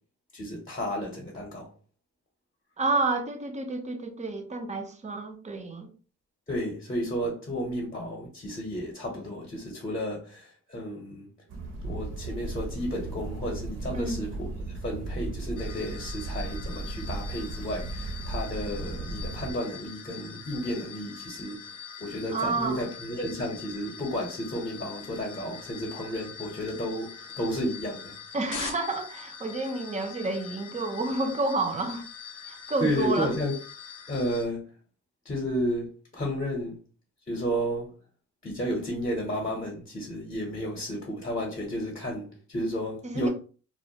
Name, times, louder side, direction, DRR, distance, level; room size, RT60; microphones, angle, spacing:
voice 1, 0.3-1.7 6.5-11.3 11.8-14.5 14.8-21.6 22.0-28.1 32.8-33.5 34.1-34.6 35.2-36.8 37.3-37.9 38.4-43.3, equal, 25° left, 0.7 m, -32 dB
voice 2, 2.8-5.9 13.9-14.2 22.3-22.8 28.3-32.0 32.5-33.4 43.0-43.3, right 2 dB, 25° right, 0.5 m, -30 dB
sound 1, 11.5-19.5, right 2 dB, 55° right, 0.7 m, -36 dB
sound 2, 15.6-34.4, left 6 dB, 90° left, 0.7 m, -43 dB
2.2 x 2.1 x 2.7 m
cardioid pair, 90°, 30 cm